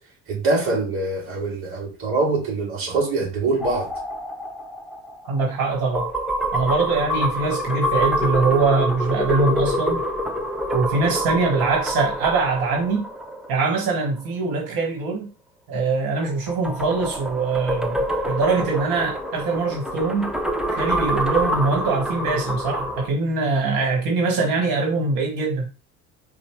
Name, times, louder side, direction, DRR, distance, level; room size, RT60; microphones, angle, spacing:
voice 1, 0.3-3.9, right 3 dB, 35° right, 2.3 m, -24 dB
sound 1, 3.6-14.2 16.2-23.1, equal, ahead, 0.5 m, -26 dB
voice 2, 5.2-6.1 6.5-10.0 10.7-13.1 13.5-15.3 15.7-18.0 18.3-20.3 20.7-25.7, right 4 dB, 70° right, 1.5 m, -22 dB
5.2 x 2.0 x 4.5 m
cardioid pair, 130°, 35 cm